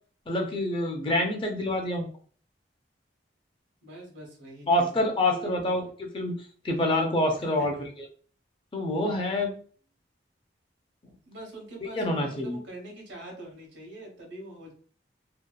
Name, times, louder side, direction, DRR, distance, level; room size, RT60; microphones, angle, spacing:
voice 1, 0.3-2.1 4.7-6.4 6.6-7.8 8.7-9.6 12.0-12.6, left 1 dB, 30° left, 3 dB, 0.4 m, -26 dB
voice 2, 3.8-5.5 7.4-7.7 11.3-14.7, right 2 dB, 80° right, 0 dB, 1.0 m, -44 dB
2.8 x 2.2 x 2.2 m, 0.43 s
head